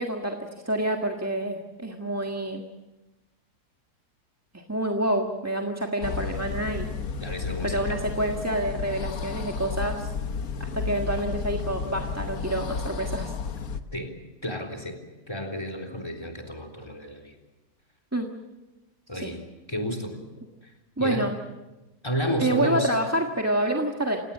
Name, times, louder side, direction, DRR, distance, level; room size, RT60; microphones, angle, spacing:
voice 1, 0.0-2.6 4.5-6.9 7.6-10.1 10.7-13.3 18.1-18.3 19.2-19.3 21.0-21.3 22.4-24.2, right 1 dB, 10° right, 2 dB, 1.5 m, -27 dB
sound 1, 6.0-13.8, left 5 dB, 60° left, 1.6 m, -32 dB
voice 2, 7.2-8.0 13.9-14.1 14.4-15.0 15.3-17.3 19.1-19.4 19.7-20.2 21.0-21.3 22.0-23.0, equal, 15° left, 2 dB, 3.8 m, -31 dB
29.0 x 18.0 x 7.4 m, 1.1 s
omnidirectional pair, 1.7 m